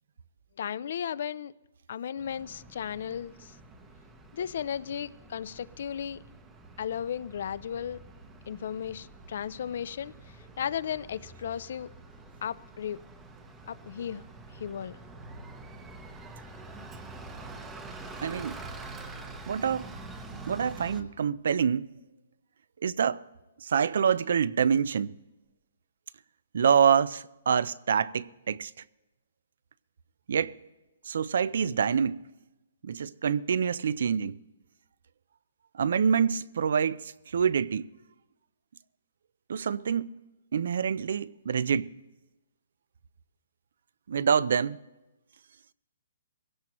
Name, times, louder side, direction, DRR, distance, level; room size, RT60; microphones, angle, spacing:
voice 1, 0.6-1.5 1.9-3.5 4.3-6.2 6.8-8.0 8.5-10.1 10.6-11.9 12.4-13.0 13.7-14.2 14.5-15.0, left 8 dB, 50° left, 0.4 m, -35 dB
Bus, 2.2-21.0, right 2 dB, 10° right, 0.8 m, -46 dB
voice 2, 18.2-18.6 19.5-19.9 20.5-21.9 22.8-23.2 23.6-25.1 26.5-28.7 30.3-30.6 31.0-32.2 32.8-34.4 35.7-37.9 39.5-40.1 40.5-41.9 44.1-44.8, right 7 dB, 60° right, 0.4 m, -26 dB
21.5 x 16.5 x 3.0 m
hypercardioid pair, 170°, 0 cm